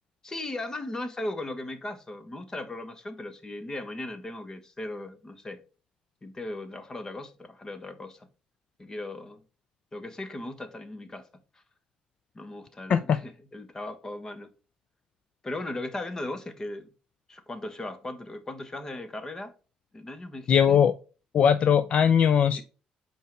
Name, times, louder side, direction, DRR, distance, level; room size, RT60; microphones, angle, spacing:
voice 1, 0.2-5.6 6.2-8.3 8.8-9.4 9.9-11.3 11.5-11.6 12.3-14.5 15.4-16.9 17.3-19.5 19.9-20.8 22.5-22.6, left 2 dB, 25° left, 1.2 m, -37 dB
voice 2, 20.5-20.9 21.3-22.6, left 8 dB, 50° left, 0.4 m, -20 dB
5.5 x 4.5 x 4.6 m
cardioid pair, 105°, 3 cm